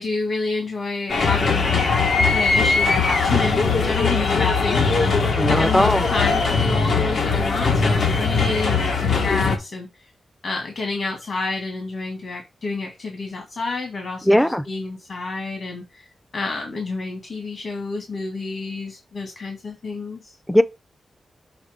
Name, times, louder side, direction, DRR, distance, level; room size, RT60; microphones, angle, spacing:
voice 1, 0.0-10.1 10.4-16.1 16.3-20.3, left 3 dB, 60° left, 1.8 m, -29 dB
sound 1, 1.1-9.6, left 4 dB, 90° left, 1.5 m, -20 dB
voice 2, 5.4-6.0 14.3-14.6 20.5-20.6, equal, 5° left, 0.4 m, -17 dB
7.2 x 3.5 x 5.0 m
wide cardioid pair, 120°, 0 cm